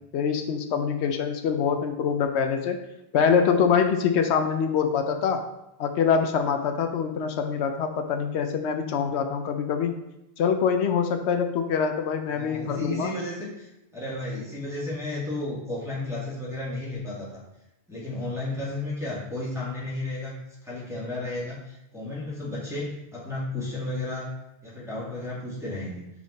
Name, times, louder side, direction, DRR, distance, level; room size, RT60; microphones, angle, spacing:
voice 1, 0.1-2.8 3.1-5.4 5.8-10.0 10.4-13.1, left 6 dB, 85° left, 6 dB, 0.9 m, -24 dB
voice 2, 12.3-17.3 17.9-20.3 20.6-24.3 24.6-26.1, left 2 dB, 5° right, -8 dB, 2.3 m, -33 dB
5.6 x 4.8 x 4.0 m, 0.88 s
omnidirectional pair, 1.1 m